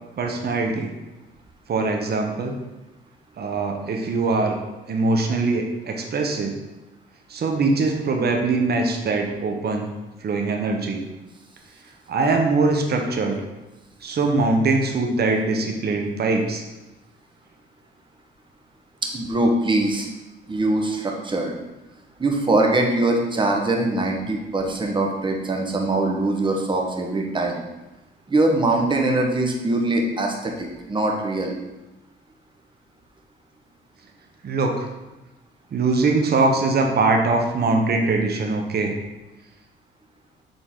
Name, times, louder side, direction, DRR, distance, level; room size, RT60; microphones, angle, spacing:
voice 1, 0.2-0.9 1.7-2.5 3.4-4.6 4.9-6.5 7.3-9.9 10.2-11.0 12.1-13.4 14.0-16.6 34.4-34.9 35.7-38.9, right 3 dB, 55° right, 3 dB, 1.0 m, -22 dB
voice 2, 19.0-20.1 20.5-21.5 22.2-27.6 28.3-31.5, right 2 dB, 25° right, 1 dB, 1.2 m, -22 dB
7.1 x 3.9 x 3.7 m, 1.0 s
cardioid pair, 90°, 20 cm